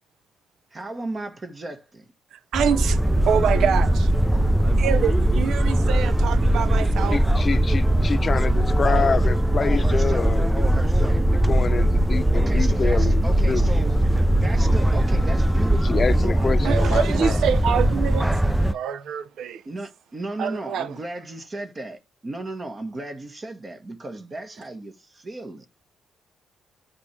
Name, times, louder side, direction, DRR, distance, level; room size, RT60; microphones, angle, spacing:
voice 1, 0.7-2.0 8.8-9.3 9.6-11.2 12.3-13.9 14.3-17.5 19.6-25.7, right 2 dB, 30° right, 1.3 m, -35 dB
voice 2, 2.3-3.0 3.3-4.1 4.8-7.2 16.6-18.3 18.7-19.6 20.4-20.9, right 8 dB, 75° right, 0.6 m, -25 dB
sound 1, 2.5-18.7, right 1 dB, 5° right, 0.4 m, -20 dB
voice 3, 7.1-10.4 11.3-13.2 13.5-13.6 15.8-17.4, left 5 dB, 35° left, 0.7 m, -27 dB
8.5 x 5.2 x 3.1 m
cardioid pair, 90°, 0 cm